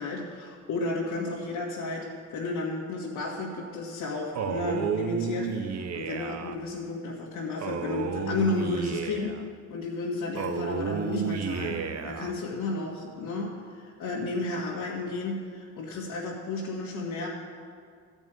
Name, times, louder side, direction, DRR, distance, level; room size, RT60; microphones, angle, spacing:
voice 1, 0.0-9.4 9.7-17.3, left 3 dB, 85° left, -5 dB, 1.8 m, -32 dB
Male speech man speaking, 4.3-6.6 7.6-9.4 10.3-12.3, right 7 dB, 60° right, 0.8 m, -32 dB
13.5 x 5.4 x 9.1 m, 2.1 s
cardioid pair, 90°, 30 cm